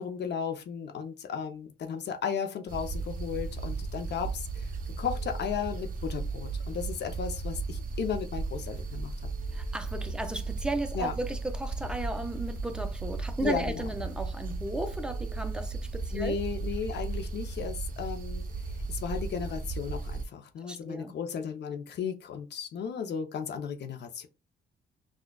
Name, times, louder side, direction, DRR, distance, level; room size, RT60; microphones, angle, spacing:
voice 1, 0.0-4.7 5.0-9.1 10.9-11.1 13.4-13.8 16.1-24.3, left 7 dB, 60° left, 0.7 m, -35 dB
sound 1, 2.7-20.2, right 3 dB, 45° right, 0.7 m, -35 dB
voice 2, 9.5-16.4 20.6-21.1, right 1 dB, 5° right, 0.6 m, -35 dB
6.0 x 2.3 x 2.3 m
cardioid pair, 90°, 20 cm